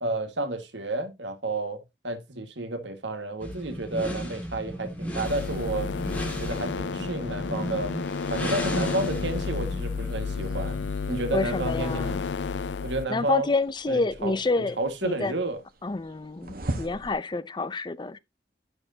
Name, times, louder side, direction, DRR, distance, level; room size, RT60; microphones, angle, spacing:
voice 1, 0.0-5.9 6.4-7.9 8.3-10.8 11.1-12.5 12.8-13.5 13.9-15.6, right 2 dB, 80° right, 1.8 m, -31 dB
sound 1, 3.4-11.0, equal, 10° left, 2.3 m, -35 dB
sound 2, 5.2-13.1, left 5 dB, 75° left, 0.5 m, -31 dB
sound 3, 10.0-17.1, right 1 dB, 55° right, 1.3 m, -42 dB
voice 2, 11.3-12.2 13.1-15.4 15.8-18.2, left 3 dB, 25° left, 0.5 m, -28 dB
10.0 x 6.3 x 2.8 m
head